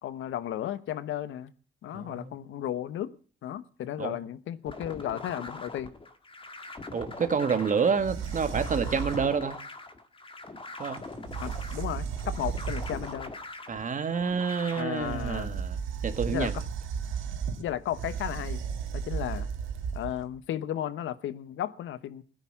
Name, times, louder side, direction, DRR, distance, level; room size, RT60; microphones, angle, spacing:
voice 1, 0.0-1.5 1.8-3.1 3.4-5.9 11.4-13.3 14.7-15.6 16.2-16.5 17.6-18.6 18.9-19.5 19.9-22.2, left 11 dB, 80° left, 16 dB, 1.1 m, -34 dB
voice 2, 1.9-2.3 4.0-4.2 6.9-9.6 10.8-11.0 13.7-16.5, right 6 dB, 40° right, 10 dB, 1.8 m, -28 dB
sound 1, 4.7-14.8, left 3 dB, 25° left, 1.9 m, -42 dB
sound 2, 8.0-9.4 11.0-11.1 11.2-13.3 15.0-20.4, right 6 dB, 85° right, 2.0 m, -34 dB
16.0 x 9.6 x 7.4 m, 0.41 s
cardioid pair, 90°, 20 cm